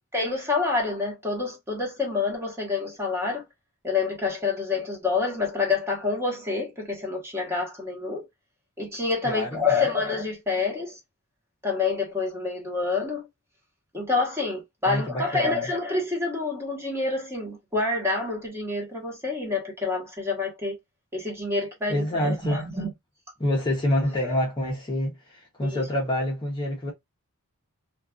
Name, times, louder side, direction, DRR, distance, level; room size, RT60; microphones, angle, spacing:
voice 1, 0.1-3.4 3.8-8.3 8.8-11.0 11.6-13.3 13.9-20.7 21.1-22.9 24.2-24.3 25.6-25.8, left 4 dB, 10° right, 0.9 m, -27 dB
voice 2, 9.2-9.9 14.9-15.7 21.9-22.7 23.4-26.9, left 1 dB, 20° left, 0.7 m, -27 dB
2.3 x 2.3 x 2.3 m
head